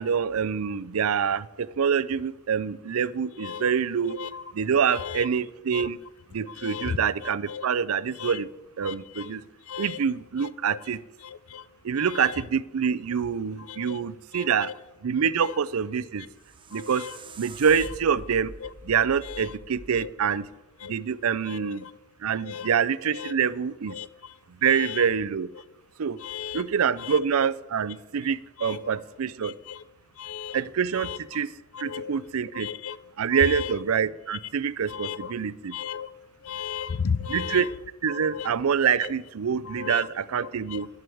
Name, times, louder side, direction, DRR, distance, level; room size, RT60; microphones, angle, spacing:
voice 1, 0.0-4.2 4.5-6.0 6.3-8.5 8.8-9.4 9.8-11.0 11.8-14.7 15.0-16.3 16.7-17.0 17.4-18.5 18.8-20.5 20.8-21.8 22.2-24.0 24.6-25.5 26.0-26.2 26.5-29.5 30.5-31.5 31.8-32.7 33.2-35.7 37.3-37.7 38.0-40.9, right 7 dB, 80° right, 0.5 m, -26 dB
voice 2, 4.1-4.4 4.9-5.3 5.7-5.9 6.6-7.7 8.2-8.4 8.8-9.3 9.7-10.0 10.4-10.8 11.2-11.6 12.0-12.4 13.7-14.0 14.3-14.7 15.4-15.5 16.7-17.1 18.6-18.7 19.3-19.5 20.0-20.1 20.8-20.9 21.5-21.9 22.4-22.7 23.1-23.4 23.9-24.1 24.7-25.0 26.2-26.6 27.0-27.2 28.6-28.9 29.4-29.8 30.2-30.6 31.0-31.2 31.7-32.2 32.5-33.0 33.3-33.7 34.9-35.3 35.7-36.1 36.4-37.7 38.1-38.5 39.0-39.1 39.7-40.1 40.7-40.9, left 7 dB, 75° left, 0.5 m, -35 dB
sound 1, 16.2-21.2, right 2 dB, 25° right, 0.8 m, -45 dB
11.0 x 7.8 x 7.7 m
head